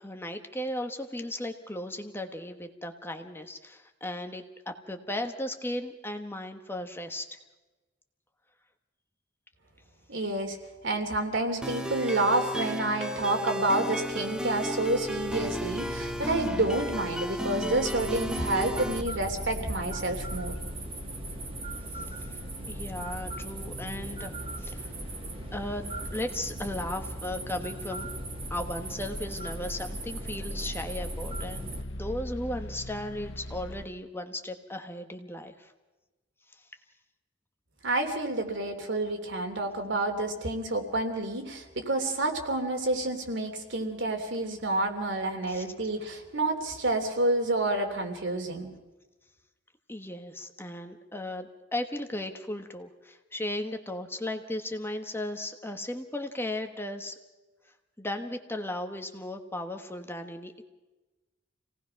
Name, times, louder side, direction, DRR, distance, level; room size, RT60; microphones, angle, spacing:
voice 1, 0.0-7.2 21.9-22.4 22.7-24.9 25.5-28.1 28.5-35.7 45.5-45.6 49.9-57.1 58.0-60.6, left 1 dB, 10° left, 5 dB, 1.3 m, -36 dB
voice 2, 10.1-10.6 10.8-20.5 37.8-48.7, right 2 dB, 65° right, 4 dB, 3.1 m, -29 dB
sound 1, 11.6-19.0, equal, 5° right, 1.0 m, -34 dB
sound 2, 14.2-33.9, left 1 dB, 85° left, 1.1 m, -41 dB
sound 3, 17.8-31.8, right 2 dB, 30° right, 2.2 m, -39 dB
27.5 x 18.0 x 5.8 m, 1.1 s
head